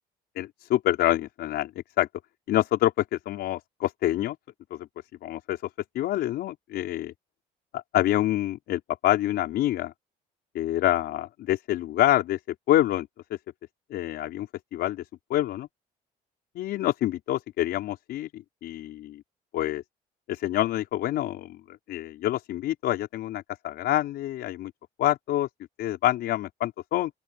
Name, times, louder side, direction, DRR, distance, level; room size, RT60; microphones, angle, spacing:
voice 1, 0.4-1.7 2.0-2.1 2.5-4.4 4.7-4.9 5.2-5.6 6.0-7.1 7.7-9.9 10.5-12.4 12.7-13.1 13.9-14.5 14.7-15.0 15.3-15.7 16.6-19.2 19.5-19.8 20.3-21.6 21.9-24.7 25.0-25.5 25.8-27.1, left 14 dB, 75° left, 5.4 m, -26 dB
open air
cardioid pair, 110°, 17 cm